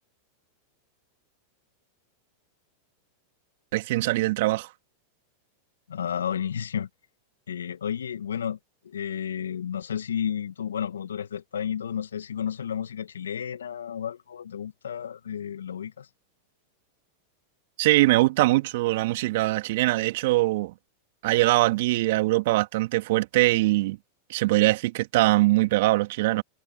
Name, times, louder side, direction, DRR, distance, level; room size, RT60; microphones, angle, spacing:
voice 1, 3.7-4.7 17.8-20.7 21.2-24.0 24.3-26.4, right 19 dB, 60° right, 2.5 m, -22 dB
voice 2, 5.9-6.9 7.5-8.6 8.8-16.1, left 8 dB, 80° left, 1.9 m, -32 dB
hypercardioid pair, 95°, 0 cm